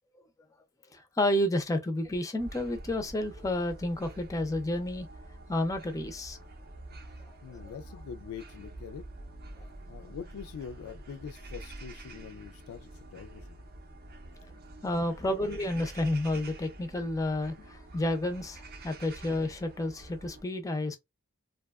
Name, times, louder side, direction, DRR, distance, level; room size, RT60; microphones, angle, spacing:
voice 1, 0.9-5.1 5.5-6.4 7.3-7.6 9.6-9.7 14.8-21.0, left 1 dB, 15° left, 0.4 m, -31 dB
sound 1, 2.4-20.4, right 2 dB, 45° right, 0.5 m, -47 dB
voice 2, 7.4-9.0 9.9-13.6 17.6-17.7, left 7 dB, 85° left, 0.3 m, -44 dB
2.6 x 2.2 x 2.3 m
head